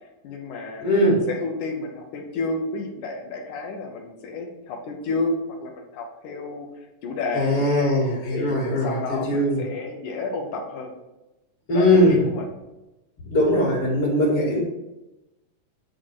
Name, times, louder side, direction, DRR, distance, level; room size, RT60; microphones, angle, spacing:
voice 1, 0.2-0.9 1.3-6.7 7.0-8.0 8.3-8.6 8.8-10.9 11.7-12.5, left 3 dB, 70° left, 2 dB, 2.4 m, -31 dB
voice 2, 0.8-1.3 7.3-9.6 11.7-12.3 13.2-14.6, left 1 dB, 45° left, -8 dB, 2.8 m, -20 dB
9.0 x 4.4 x 4.7 m, 0.99 s
omnidirectional pair, 3.7 m